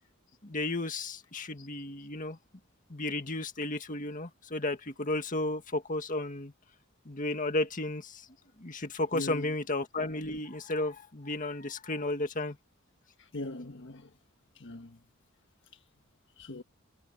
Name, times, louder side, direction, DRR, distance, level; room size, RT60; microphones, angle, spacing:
voice 1, 0.4-2.4 2.9-6.5 7.1-8.3 8.6-12.6, left 2 dB, 40° left, 1.9 m, -33 dB
voice 2, 9.1-9.6 13.2-14.1 14.5-15.0 16.4-16.6, left 1 dB, 60° left, 1.4 m, -40 dB
head